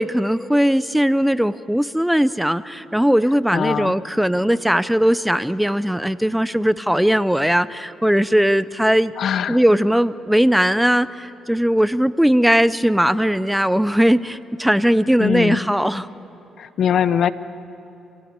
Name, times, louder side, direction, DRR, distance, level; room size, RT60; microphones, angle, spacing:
voice 1, 0.0-9.1 9.5-16.1, equal, 5° right, 16 dB, 0.5 m, -19 dB
voice 2, 3.5-3.9 9.2-9.6 15.2-15.6 16.6-17.3, left 8 dB, 65° left, 15 dB, 0.7 m, -21 dB
27.0 x 16.0 x 9.6 m, 2.9 s
cardioid pair, 90°, 0 cm